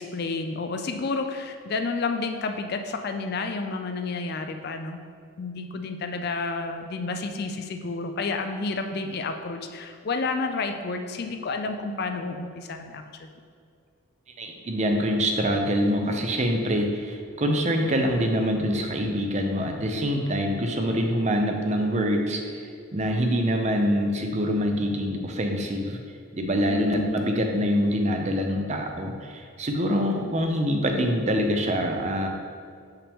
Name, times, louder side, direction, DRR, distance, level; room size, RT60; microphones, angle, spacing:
voice 1, 0.0-5.0 5.4-13.3 26.7-27.1, left 3 dB, 45° left, 6 dB, 0.4 m, -30 dB
voice 2, 14.4-26.0 26.3-32.3, equal, 30° right, 3 dB, 0.6 m, -25 dB
6.8 x 5.7 x 3.5 m, 2.3 s
head